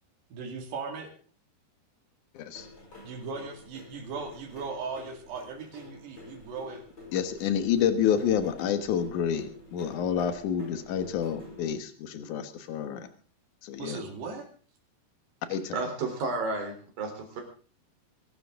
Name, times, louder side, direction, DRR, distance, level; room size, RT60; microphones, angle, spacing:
voice 1, 0.3-1.1 3.0-6.8 13.8-14.5, right 4 dB, 85° right, 2 dB, 4.4 m, -38 dB
voice 2, 2.3-2.7 7.1-13.1 13.6-14.0 15.5-15.8, left 8 dB, 60° left, 9 dB, 2.5 m, -28 dB
sound 1, 2.5-11.7, left 2 dB, 25° left, 6.0 m, -49 dB
voice 3, 15.7-17.4, right 3 dB, 60° right, 3 dB, 5.2 m, -32 dB
24.0 x 12.0 x 3.7 m, 0.40 s
omnidirectional pair, 4.7 m